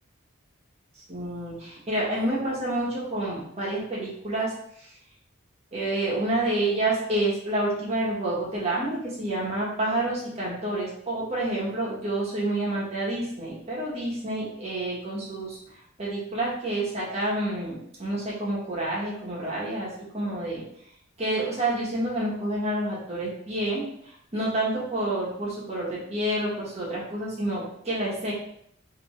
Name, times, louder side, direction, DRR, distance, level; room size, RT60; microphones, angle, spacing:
voice 1, 1.1-4.5 4.8-4.9 5.7-15.6 16.0-19.9 20.1-20.6 21.2-23.8 24.3-28.3, right 1 dB, 30° right, -6 dB, 1.2 m, -28 dB
3.4 x 2.8 x 3.1 m, 0.70 s
head